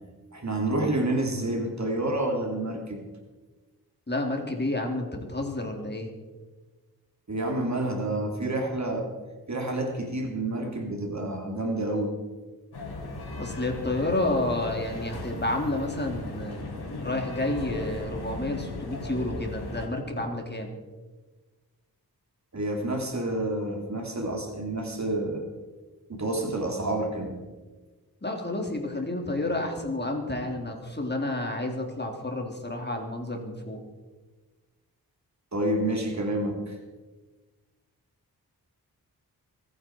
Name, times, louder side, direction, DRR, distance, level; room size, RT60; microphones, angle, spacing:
voice 1, 0.3-3.0 7.3-9.1 9.5-12.2 22.5-25.5 26.1-27.4 35.5-36.8, right 1 dB, 45° right, 2 dB, 3.3 m, -29 dB
voice 2, 4.1-6.1 13.4-16.7 17.0-20.7 28.2-33.8, left 2 dB, 25° left, 2 dB, 3.6 m, -30 dB
sound 1, 12.7-19.9, left 2 dB, 85° left, 3.6 m, -37 dB
25.5 x 9.6 x 4.7 m, 1.3 s
cardioid pair, 45°, 38 cm